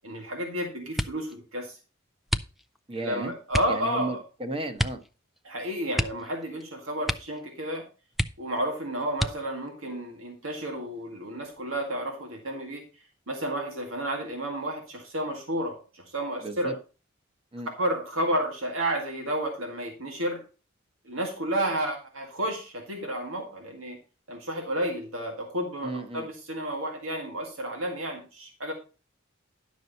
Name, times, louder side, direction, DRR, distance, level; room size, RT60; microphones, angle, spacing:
voice 1, 0.0-1.8 2.9-4.2 5.4-7.8 8.4-12.8 13.3-16.7 17.8-20.4 21.0-24.0 24.3-28.7, right 1 dB, 85° right, 2.0 m, -31 dB
sound 1, 0.9-1.4 2.3-2.9 3.5-3.8 4.8-5.1 5.4-5.5 5.9-6.7 7.0-7.5 7.8-7.9 8.1-8.7 9.1-9.7 10.4-11.0 11.4-11.8, equal, ahead, 0.4 m, -30 dB
voice 2, 2.9-3.3 3.7-5.0 16.4-16.7 17.5-17.7 25.8-26.3, right 2 dB, 30° right, 1.1 m, -34 dB
11.0 x 6.2 x 4.1 m
head